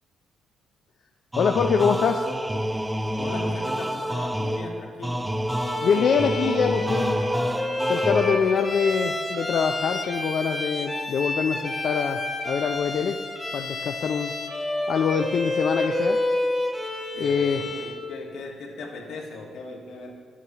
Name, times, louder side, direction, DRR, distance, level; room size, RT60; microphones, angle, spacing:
sound 1, 1.3-8.7, equal, 10° right, 0.4 m, -28 dB
voice 1, 1.4-2.3 5.8-7.2 7.9-12.2 12.5-13.2 13.5-14.3 14.9-16.2 17.2-17.8, left 6 dB, 60° left, 5 dB, 0.4 m, -24 dB
voice 2, 3.2-5.3 17.1-20.1, left 3 dB, 80° left, 0 dB, 1.5 m, -38 dB
Bowed string instrument, 5.5-18.1, left 2 dB, 15° left, 1.0 m, -29 dB
10.5 x 8.3 x 2.9 m, 2.4 s
cardioid pair, 90°, 0 cm